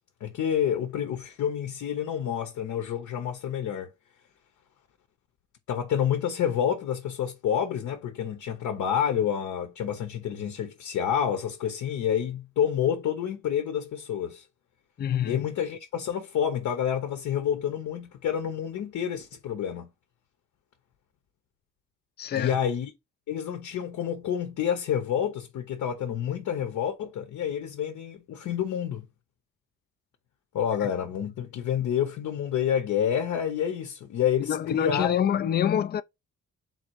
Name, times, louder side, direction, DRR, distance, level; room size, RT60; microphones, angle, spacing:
voice 1, 0.2-3.9 5.7-14.4 15.2-19.9 22.4-22.9 23.3-29.1 30.5-35.1, left 9 dB, 70° left, 0.8 m, -28 dB
voice 2, 15.0-15.5 22.2-22.6 30.8-30.9 34.4-36.0, left 9 dB, 35° left, 0.4 m, -26 dB
3.7 x 2.6 x 4.5 m
cardioid pair, 90°, 30 cm